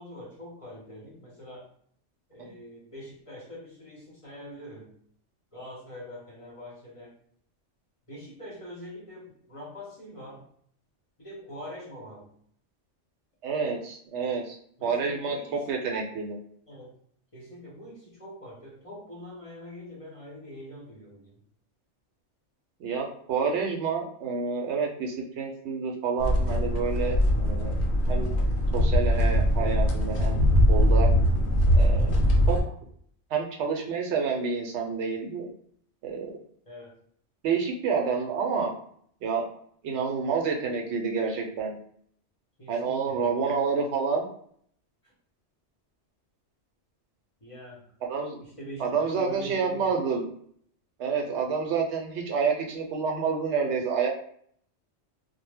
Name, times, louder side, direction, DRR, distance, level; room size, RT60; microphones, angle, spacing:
voice 1, 0.0-1.7 2.3-4.9 5.5-7.1 8.1-10.4 11.2-12.3 14.1-14.3 14.8-16.2 16.7-16.9 17.3-21.4 36.7-36.9 42.6-43.3 45.0-45.1 47.4-47.8 48.4-50.0, equal, 35° left, -5 dB, 0.7 m, -44 dB
voice 2, 13.4-14.6 14.8-15.4 15.7-16.3 22.8-27.8 28.1-28.3 28.7-30.4 30.7-31.1 31.8-32.1 32.5-32.6 33.3-35.5 36.0-36.4 37.4-38.7 39.2-39.5 39.8-41.8 42.7-44.3 48.0-48.4 48.8-50.2 51.0-54.1, right 5 dB, 75° right, 1 dB, 0.8 m, -28 dB
sound 1, 26.2-32.6, equal, 70° left, 0.8 m, -22 dB
2.1 x 2.1 x 3.3 m, 0.63 s
omnidirectional pair, 1.2 m